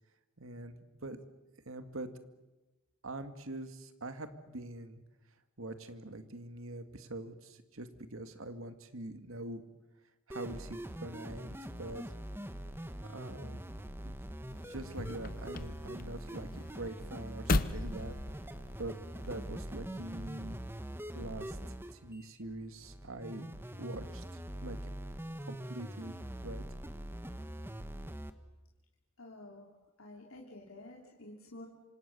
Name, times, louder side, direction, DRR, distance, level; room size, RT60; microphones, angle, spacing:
voice 1, 0.4-1.2 1.7-2.1 3.0-5.0 5.6-9.6 10.3-12.0 13.0-13.6 14.0-14.1 14.5-18.2 18.8-20.6 21.1-21.6 21.9-24.8 25.5-26.6, right 2 dB, 80° right, 9 dB, 2.2 m, -44 dB
sound 1, 10.3-28.3, equal, 10° right, 1.3 m, -43 dB
sound 2, 14.5-19.5, left 2 dB, 45° left, 0.9 m, -37 dB
voice 2, 29.2-29.7 30.0-31.7, left 2 dB, 85° left, -1 dB, 3.3 m, -50 dB
27.5 x 26.0 x 7.0 m, 1.1 s
head